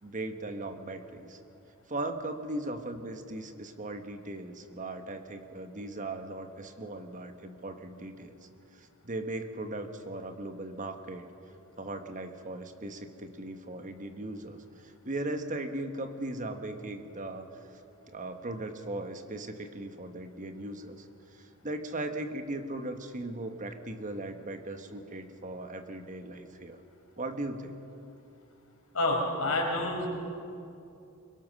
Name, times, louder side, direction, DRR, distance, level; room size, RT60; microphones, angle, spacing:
voice 1, 0.0-1.4 1.9-11.3 11.8-17.8 18.1-21.1 21.3-26.8 27.2-27.8, right 2 dB, 35° right, 7 dB, 1.3 m, -38 dB
voice 2, 28.9-30.1, left 2 dB, 70° left, 0 dB, 4.8 m, -28 dB
24.5 x 22.0 x 6.4 m, 2.7 s
head